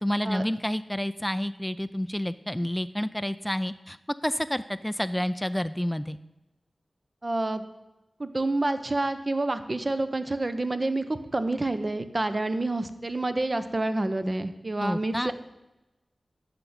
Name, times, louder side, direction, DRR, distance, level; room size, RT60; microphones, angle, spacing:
voice 1, 0.0-4.0 4.2-6.2 14.8-15.3, equal, 5° left, 11 dB, 0.4 m, -29 dB
voice 2, 7.2-7.6 8.2-15.3, right 2 dB, 35° right, 10 dB, 0.9 m, -28 dB
10.5 x 6.0 x 8.8 m, 1.0 s
wide cardioid pair, 85°, 0 cm